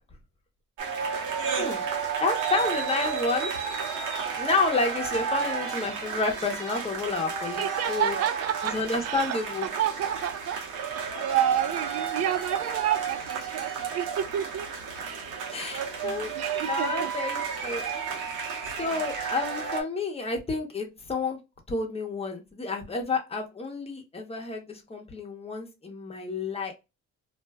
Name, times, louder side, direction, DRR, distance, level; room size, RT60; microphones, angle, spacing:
sound 1, 0.8-19.8, right 6 dB, 80° right, 1.0 m, -32 dB
voice 1, 2.2-3.5 4.4-8.2 8.6-9.7 15.5-16.3 16.7-17.8 18.8-21.4 21.7-26.7, left 3 dB, 20° left, 0.8 m, -30 dB
voice 2, 7.6-8.8 9.0-14.7 15.0-17.1 18.8-19.0, right 10 dB, 55° right, 0.5 m, -30 dB
2.5 x 2.2 x 2.2 m
cardioid pair, 90°, 30 cm